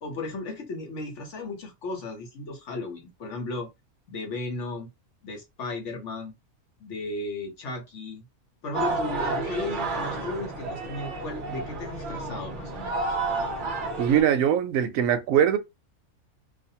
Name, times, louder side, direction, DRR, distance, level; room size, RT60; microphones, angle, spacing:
voice 1, 0.0-3.7 4.1-4.9 5.2-6.3 6.8-8.2 8.6-13.2, left 2 dB, 60° left, 1.1 m, -35 dB
sound 1, 8.7-14.2, right 3 dB, 50° right, 0.6 m, -31 dB
voice 2, 14.0-15.6, right 9 dB, 70° right, 0.9 m, -22 dB
2.5 x 2.4 x 2.7 m
omnidirectional pair, 1.5 m